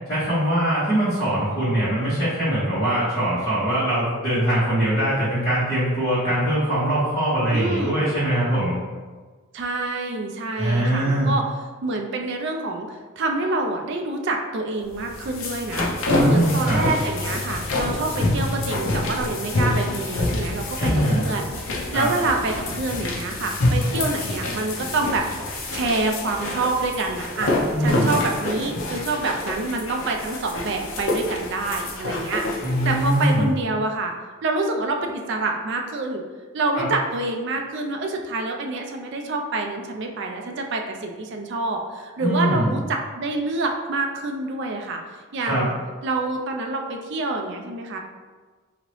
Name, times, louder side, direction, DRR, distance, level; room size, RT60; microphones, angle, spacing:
voice 1, 0.1-8.7 10.6-11.3 16.1-16.8 20.8-21.2 21.9-22.1 27.7-28.1 32.6-33.5 36.7-36.9 42.2-42.8 45.4-45.7, right 1 dB, 20° left, -18 dB, 1.4 m, -22 dB
voice 2, 7.5-8.0 9.5-11.4 11.8-15.9 16.2-25.2 25.7-27.5 27.8-32.4 32.8-34.1 34.4-36.2 36.5-45.0 45.3-45.7 46.0-48.0, right 2 dB, 55° right, 2 dB, 0.4 m, -27 dB
sound 1, 14.9-33.3, left 2 dB, 65° left, 0.6 m, -27 dB
2.9 x 2.7 x 3.0 m, 1.4 s
head